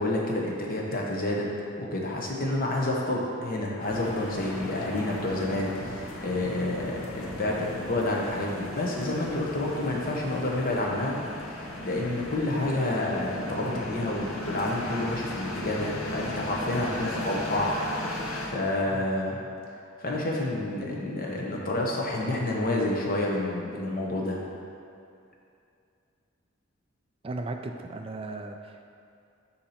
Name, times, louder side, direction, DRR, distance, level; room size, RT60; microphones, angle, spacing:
voice 1, 0.0-1.5 1.8-11.2 11.8-19.4 20.0-24.4, left 1 dB, 45° left, -2 dB, 0.9 m, -29 dB
sound 1, 3.8-18.5, left 1 dB, 85° left, 0.8 m, -37 dB
voice 2, 27.2-28.9, right 2 dB, 25° right, 5 dB, 0.3 m, -36 dB
7.0 x 2.8 x 5.6 m, 2.5 s
head